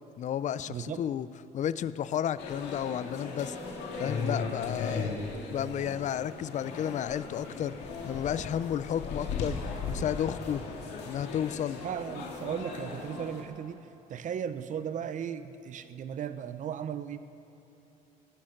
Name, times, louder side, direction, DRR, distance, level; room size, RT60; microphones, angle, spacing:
voice 1, 0.2-1.3 1.5-3.6 4.0-5.1 5.5-7.8 8.0-10.6 11.1-11.8, left 10 dB, 45° left, 16 dB, 0.5 m, -32 dB
voice 2, 0.7-1.0 11.8-13.8 14.1-17.2, right 8 dB, 50° right, 12 dB, 0.7 m, -36 dB
sound 1, 2.4-13.4, left 4 dB, 80° left, 2.2 m, -37 dB
18.5 x 11.0 x 5.9 m, 2.9 s
cardioid pair, 110°, 17 cm